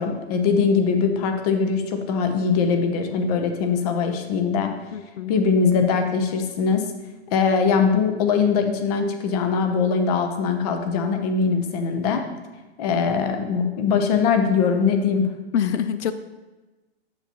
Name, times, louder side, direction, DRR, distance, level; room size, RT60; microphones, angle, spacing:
voice 1, 0.0-4.7 5.3-6.9 7.3-12.2 12.8-15.3, left 5 dB, 35° left, 6 dB, 0.8 m, -21 dB
voice 2, 4.9-5.3 15.5-16.1, left 8 dB, 80° left, 12 dB, 0.5 m, -25 dB
8.7 x 6.9 x 3.0 m, 1.2 s
hypercardioid pair, 155°, 34 cm